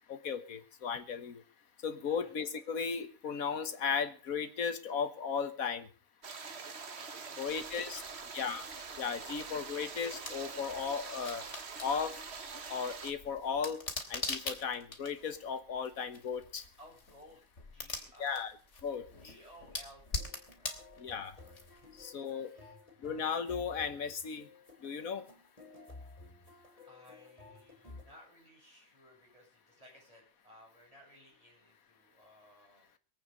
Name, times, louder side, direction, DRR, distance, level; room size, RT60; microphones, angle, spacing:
voice 1, 0.1-1.4 1.8-5.9 7.4-8.0 8.3-8.6 9.0-11.4 11.8-12.1 12.7-13.8 14.1-16.6 18.2-18.5 18.8-19.0 21.0-21.3 22.0-22.5 23.0-24.5 24.8-25.2, left 6 dB, 85° left, 9 dB, 1.8 m, -36 dB
sound 1, 6.2-13.1, right 5 dB, 50° right, 1.5 m, -44 dB
voice 2, 7.3-8.6 16.8-17.4 17.7-18.4 19.1-20.8 21.1-22.1 22.3-22.8 26.5-26.6 26.9-32.9, equal, 25° right, -2 dB, 7.8 m, -59 dB
sound 2, 7.5-22.0, left 2 dB, 55° left, 3.0 m, -45 dB
sound 3, 20.0-28.0, left 3 dB, 25° left, 3.8 m, -54 dB
23.0 x 8.6 x 5.2 m, 0.38 s
omnidirectional pair, 1.4 m